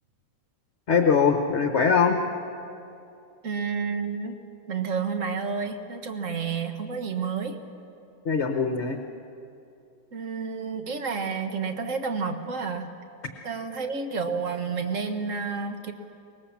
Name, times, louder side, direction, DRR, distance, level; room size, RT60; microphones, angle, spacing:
voice 1, 0.9-2.2 8.2-9.0, left 6 dB, 45° left, 4 dB, 1.3 m, -22 dB
voice 2, 3.4-4.3 4.7-7.6 10.1-12.9 13.4-15.9, right 5 dB, 50° right, 6 dB, 1.7 m, -30 dB
24.0 x 21.0 x 7.4 m, 2.6 s
omnidirectional pair, 1.9 m